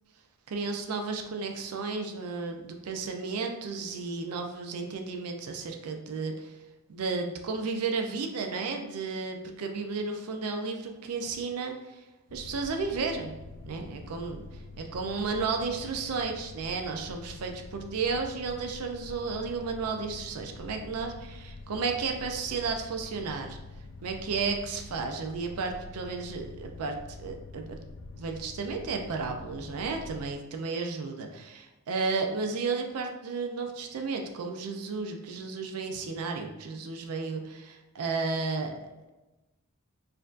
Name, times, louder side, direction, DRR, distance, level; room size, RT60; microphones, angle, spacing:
voice 1, 0.5-6.6 6.9-12.0 12.3-13.3 13.7-14.4 14.8-23.6 24.0-27.8 28.2-38.9, right 4 dB, 85° right, 4 dB, 0.4 m, -33 dB
sound 1, 12.3-30.3, left 3 dB, 60° left, 0.3 m, -46 dB
4.2 x 2.6 x 2.4 m, 1.1 s
head